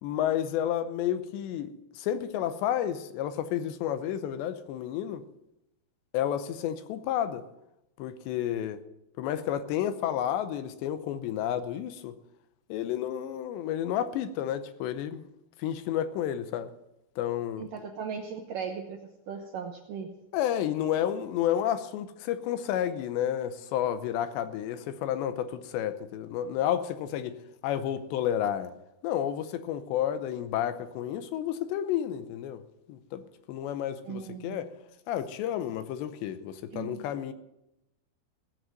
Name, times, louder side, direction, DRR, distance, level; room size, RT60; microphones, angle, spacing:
voice 1, 0.0-5.2 6.1-7.4 8.0-8.8 9.2-12.1 12.7-15.3 15.6-16.7 17.2-17.7 20.3-27.4 27.6-28.7 29.0-32.6 32.9-34.7 35.1-37.3, left 10 dB, 80° left, 12 dB, 2.9 m, -31 dB
voice 2, 17.6-19.0 19.3-20.1 34.1-34.7 36.7-37.0, right 6 dB, 70° right, 3 dB, 2.1 m, -37 dB
17.5 x 7.8 x 7.7 m, 0.85 s
omnidirectional pair, 5.1 m